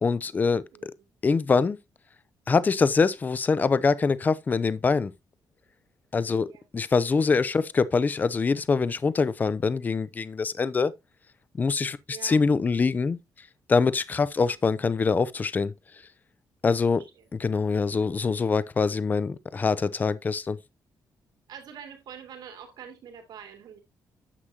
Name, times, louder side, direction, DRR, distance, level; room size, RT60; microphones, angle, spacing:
voice 1, 0.0-0.9 1.2-1.8 2.5-5.1 6.1-6.5 6.7-10.9 11.6-13.2 13.7-15.7 16.6-17.0 17.4-20.6, left 4 dB, 25° left, 0.5 m, -24 dB
voice 2, 0.7-1.1 6.3-6.7 7.5-7.7 12.1-12.4 14.4-14.6 17.1-17.3 21.5-23.8, right 8 dB, 80° right, 3.2 m, -45 dB
9.8 x 7.8 x 2.8 m
wide cardioid pair, 155°, 7 cm